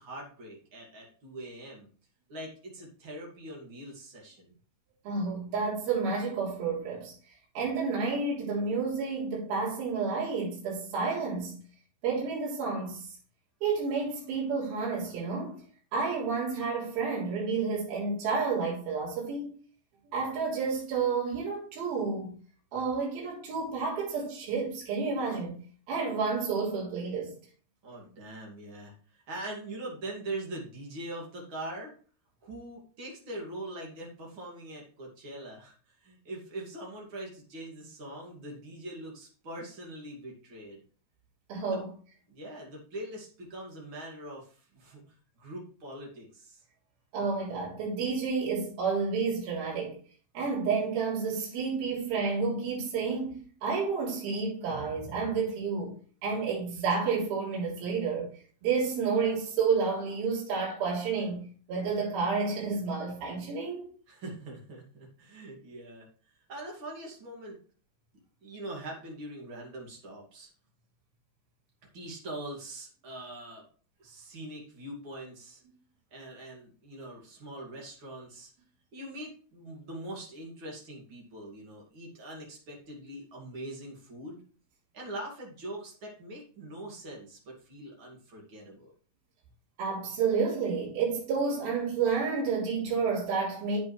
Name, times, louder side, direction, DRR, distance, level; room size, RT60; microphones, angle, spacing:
voice 1, 0.0-1.9 2.3-4.5 27.8-31.9 32.4-40.8 41.7-41.8 42.3-46.6 64.1-66.1 66.5-67.6 68.4-70.5 71.9-73.6 74.0-75.6 76.1-78.5 78.9-84.4 84.9-88.9, right 1 dB, 35° right, 2.1 m, -42 dB
voice 2, 5.0-7.1 7.5-11.6 12.0-13.0 13.6-15.6 15.9-19.5 20.1-22.3 22.7-25.6 25.9-27.3 41.5-41.9 47.1-50.0 50.3-55.9 56.2-58.3 58.6-63.9 89.8-93.8, right 5 dB, 50° right, 5.0 m, -30 dB
8.5 x 8.3 x 3.3 m
omnidirectional pair, 5.5 m